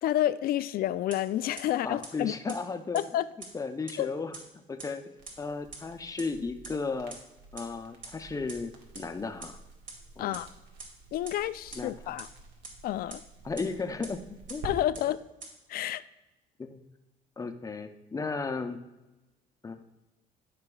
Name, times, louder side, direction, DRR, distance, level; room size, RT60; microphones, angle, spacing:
voice 1, 0.0-2.3 2.9-3.3 4.0-4.1 10.2-10.5 11.1-12.3 12.8-13.2 14.6-15.2 15.7-16.0, left 13 dB, 60° left, 14 dB, 0.4 m, -29 dB
sound 1, 1.1-1.2 1.6-1.7 2.0-2.1 2.5-2.6 2.9-3.0 3.4-3.5 3.9-4.0 4.3-4.4 4.8-4.9 5.3-5.4 5.7-5.8 6.2-6.3 6.6-6.7 7.1-7.2 7.6-7.7 8.0-8.1 8.5-8.6 8.9-9.0 9.4-9.5 9.9-10.0 10.3-10.4 10.8-10.9 11.3-11.4 11.7-11.8 12.2-12.3 12.6-12.7 13.1-13.2 13.6-13.7 14.0-14.1 14.5-14.6 14.9-15.0 15.4-15.5, right 4 dB, 50° right, 2.6 m, -41 dB
voice 2, 1.8-3.0 3.5-4.3 4.7-5.0 5.4-7.1 7.5-9.6 10.2-10.4 11.7-12.1 13.4-14.2 14.5-14.7 15.0-15.1 16.6-16.8 17.4-18.8 19.6-19.8, left 4 dB, 20° left, 7 dB, 0.6 m, -35 dB
Crackle, 5.2-14.7, right 3 dB, 85° right, 1.6 m, -50 dB
13.0 x 5.9 x 2.3 m, 1.0 s
cardioid pair, 110°, 17 cm